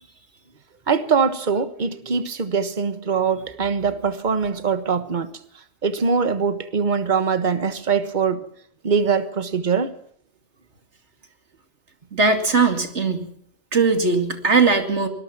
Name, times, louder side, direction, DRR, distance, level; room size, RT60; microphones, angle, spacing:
voice 1, 0.9-5.3 5.8-8.5 8.8-9.9, right 5 dB, 40° right, 1.4 m, -22 dB
voice 2, 12.1-13.3 13.7-15.1, right 4 dB, 70° right, 2.9 m, -19 dB
24.5 x 20.0 x 6.1 m
omnidirectional pair, 1.2 m